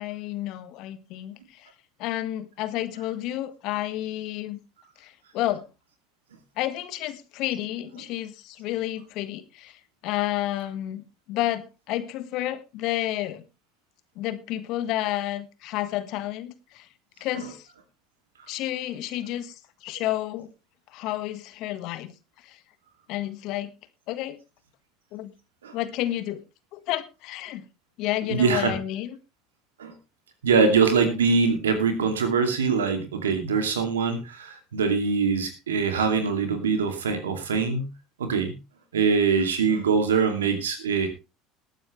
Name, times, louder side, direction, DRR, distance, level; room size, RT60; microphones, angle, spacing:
voice 1, 0.0-1.7 2.0-4.6 5.0-5.6 6.6-13.4 14.1-16.9 17.2-17.7 18.5-19.5 19.8-20.5 20.9-22.1 22.4-22.6 23.1-23.7 24.1-24.4 25.1-25.3 25.7-26.4 26.7-27.6 28.0-29.2, left 14 dB, 60° left, 12 dB, 1.5 m, -30 dB
voice 2, 28.3-28.7 29.8-29.9 30.4-37.9 38.2-38.5 38.9-41.1, right 5 dB, 85° right, 7 dB, 2.6 m, -23 dB
19.5 x 9.1 x 3.2 m, 0.27 s
hypercardioid pair, 75°, 0 cm